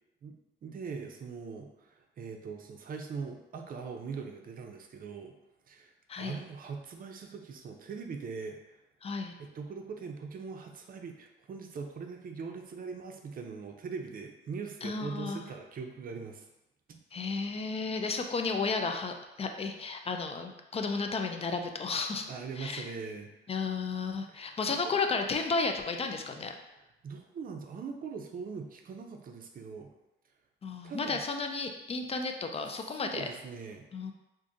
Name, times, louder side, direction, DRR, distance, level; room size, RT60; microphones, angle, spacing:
voice 1, 0.2-5.3 5.7-5.9 6.2-8.8 9.4-16.5 16.9-17.0 22.3-23.6 24.3-25.0 27.0-29.9 30.8-31.2 32.6-33.8, right 5 dB, 45° right, 4 dB, 0.5 m, -41 dB
voice 2, 9.0-9.3 14.8-15.4 17.1-22.3 22.6-22.9 23.5-26.6 30.6-33.3 33.9-34.1, left 4 dB, 30° left, 5 dB, 0.4 m, -33 dB
3.5 x 2.6 x 2.6 m, 0.95 s
cardioid pair, 90°, 20 cm